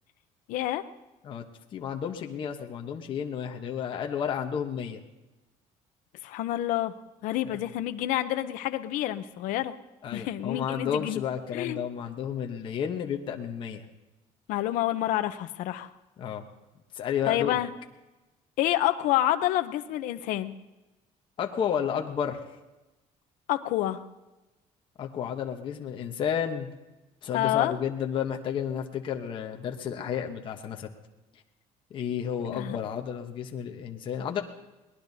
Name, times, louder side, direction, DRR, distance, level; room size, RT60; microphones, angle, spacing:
voice 1, 0.5-0.8 6.2-6.9 7.2-9.7 10.1-11.2 11.5-11.8 14.5-15.9 17.3-17.7 18.6-20.5 23.5-24.0 27.3-27.7 32.4-32.8, left 14 dB, 85° left, 10 dB, 0.7 m, -28 dB
voice 2, 1.7-5.0 7.4-7.6 10.0-13.8 16.2-16.4 17.0-17.5 21.4-22.4 25.0-26.7 27.2-30.9 31.9-34.4, left 8 dB, 40° left, 3 dB, 1.0 m, -31 dB
22.5 x 19.0 x 2.7 m, 1.1 s
cardioid pair, 180°, 13 cm